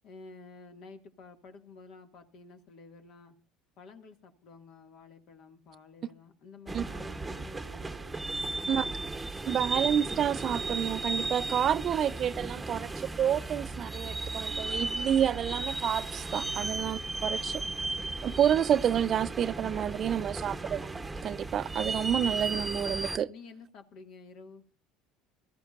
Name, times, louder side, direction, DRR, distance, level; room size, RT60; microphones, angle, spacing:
voice 1, 0.0-3.4 3.8-9.1 16.6-16.8 23.3-24.6, left 4 dB, 60° left, 2.0 m, -51 dB
sound 1, 6.7-23.2, right 3 dB, 15° right, 1.0 m, -35 dB
voice 2, 9.5-17.6 18.2-20.9 21.2-23.3, right 9 dB, 45° right, 0.6 m, -29 dB
21.5 x 14.0 x 2.5 m
supercardioid pair, 95°, 0 cm